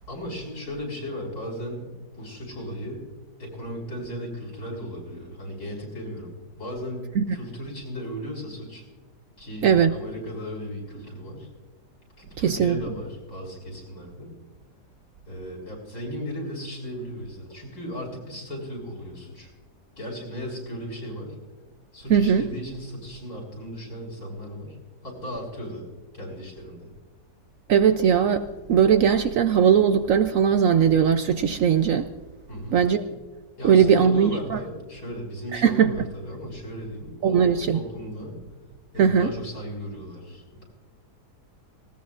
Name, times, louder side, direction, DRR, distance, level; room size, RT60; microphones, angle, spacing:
voice 1, 0.1-3.1 3.4-8.8 9.4-11.5 12.2-14.3 15.3-19.5 20.0-21.4 21.9-24.8 25.0-25.9 26.1-26.9 32.5-32.8 33.6-38.4 38.9-40.6, equal, 65° left, -2 dB, 6.1 m, -36 dB
voice 2, 9.6-9.9 12.4-12.8 22.1-22.5 27.7-32.1 32.7-33.0 33.6-34.6 35.5-35.9 37.2-37.8 39.0-39.3, right 7 dB, 65° right, 9 dB, 0.9 m, -19 dB
19.0 x 18.0 x 2.5 m, 1.2 s
omnidirectional pair, 1.8 m